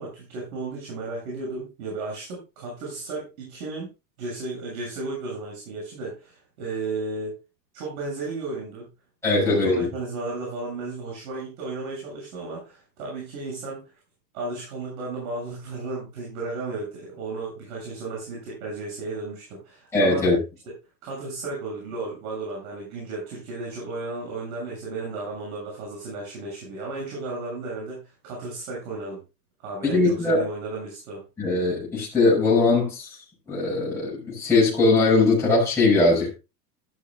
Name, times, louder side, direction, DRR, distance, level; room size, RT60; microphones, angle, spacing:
voice 1, 0.0-3.9 4.2-7.4 7.7-8.9 9.3-13.9 14.3-20.3 21.0-29.2 29.6-31.3, right 3 dB, 55° right, 7.4 m, -34 dB
voice 2, 9.2-9.9 19.9-20.4 29.8-30.4 31.4-33.2 33.5-36.3, left 3 dB, 5° left, 6.3 m, -20 dB
13.5 x 12.0 x 2.4 m
supercardioid pair, 160°, 49 cm